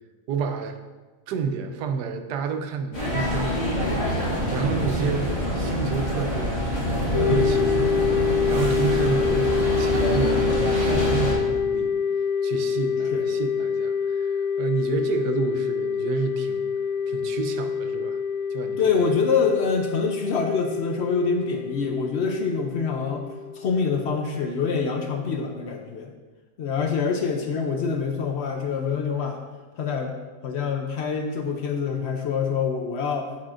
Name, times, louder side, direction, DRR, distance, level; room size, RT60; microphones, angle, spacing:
voice 1, 0.3-0.8 1.3-3.8 4.5-6.6 7.1-10.4 10.7-11.9 12.4-16.7 17.1-18.2 18.5-18.8, right 6 dB, 90° right, 7 dB, 1.2 m, -30 dB
sound 1, 2.9-11.3, equal, 25° left, 2.2 m, -25 dB
sound 2, 7.1-24.5, left 6 dB, 50° left, 1.1 m, -26 dB
voice 2, 18.8-23.3 23.5-26.1 26.6-29.4 29.8-30.2 30.4-33.3, left 5 dB, 70° left, 4 dB, 0.6 m, -25 dB
7.5 x 7.4 x 2.5 m, 1.3 s
omnidirectional pair, 1.7 m